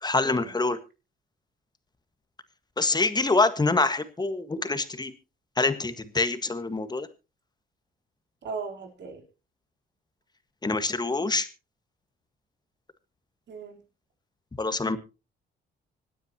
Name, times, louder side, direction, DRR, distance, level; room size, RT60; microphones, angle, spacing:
voice 1, 0.0-0.8 2.8-5.1 5.6-7.1 10.6-11.5 14.6-15.0, left 3 dB, 20° left, 10 dB, 1.6 m, -25 dB
voice 2, 8.4-9.2 13.5-13.8, right 5 dB, 60° right, 2 dB, 3.8 m, -37 dB
25.5 x 9.4 x 2.9 m, 0.30 s
cardioid pair, 90°, 20 cm